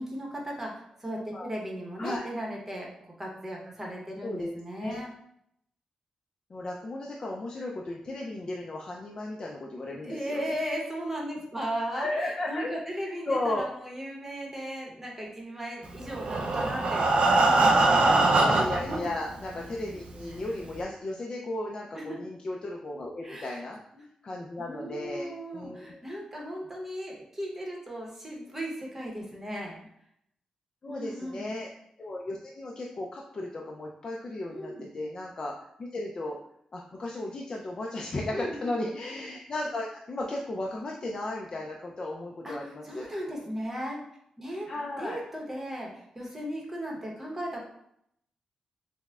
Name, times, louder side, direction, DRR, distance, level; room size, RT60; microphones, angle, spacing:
voice 1, 0.0-2.9 3.2-5.1 10.0-18.2 18.8-19.1 21.9-22.2 23.2-23.6 23.9-24.0 24.6-29.8 30.9-31.5 34.5-34.9 38.3-38.8 42.4-42.6 42.8-44.0 44.4-44.7 45.0-47.6, equal, 15° right, -1 dB, 0.8 m, -36 dB
voice 2, 6.5-10.5 11.9-12.7 13.3-13.6 18.4-23.8 24.2-26.0 30.8-31.7 32.0-36.4 36.7-43.1 44.7-45.2, left 2 dB, 40° left, -1 dB, 0.3 m, -35 dB
Breathing, 16.0-19.0 19.7-19.8 20.2-20.3 20.7-20.8, right 2 dB, 60° right, 0.4 m, -22 dB
5.8 x 2.0 x 2.3 m, 0.74 s
wide cardioid pair, 130°, 2 cm